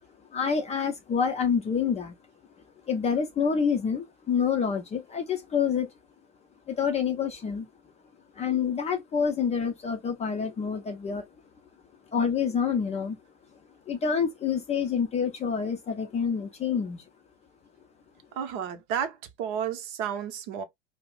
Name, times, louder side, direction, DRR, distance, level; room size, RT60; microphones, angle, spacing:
voice 1, 0.3-2.2 2.9-5.9 6.7-7.7 8.4-11.2 12.1-13.2 13.9-17.0, left 6 dB, 20° left, 0.5 m, -27 dB
voice 2, 18.3-20.6, right 8 dB, 50° right, 0.7 m, -32 dB
2.3 x 2.0 x 3.6 m
hypercardioid pair, 95°, 36 cm